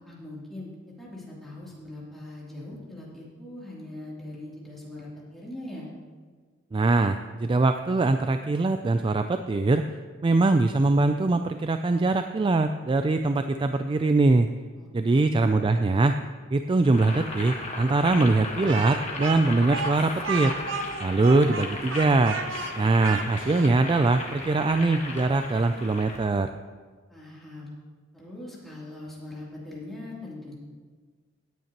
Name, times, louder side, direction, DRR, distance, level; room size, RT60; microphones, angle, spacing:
voice 1, 0.0-5.9 14.8-15.4 27.1-27.7 28.1-30.5, left 1 dB, ahead, -7 dB, 3.0 m, -41 dB
voice 2, 6.7-9.8 10.2-14.5 14.9-16.2 16.5-20.5 21.0-22.4 22.8-26.5, right 3 dB, 25° right, 8 dB, 0.3 m, -22 dB
Boiling, 16.8-26.3, left 2 dB, 35° left, 1.5 m, -36 dB
Speech, 18.7-23.8, right 4 dB, 75° right, 1.0 m, -33 dB
17.0 x 9.3 x 3.0 m, 1.5 s
head